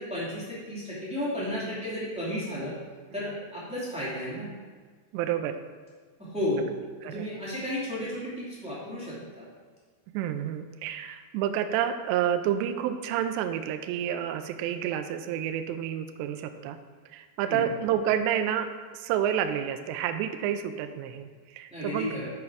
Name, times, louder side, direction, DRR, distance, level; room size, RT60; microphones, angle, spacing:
voice 1, 0.0-2.7 3.1-4.5 6.2-6.7 7.0-9.5 17.5-17.6 21.7-22.3, left 1 dB, 5° right, -10 dB, 1.1 m, -33 dB
voice 2, 5.1-5.6 7.0-7.3 10.1-16.8 17.1-22.2, right 10 dB, 85° right, 8 dB, 2.6 m, -29 dB
8.5 x 5.9 x 4.9 m, 1.5 s
omnidirectional pair, 5.4 m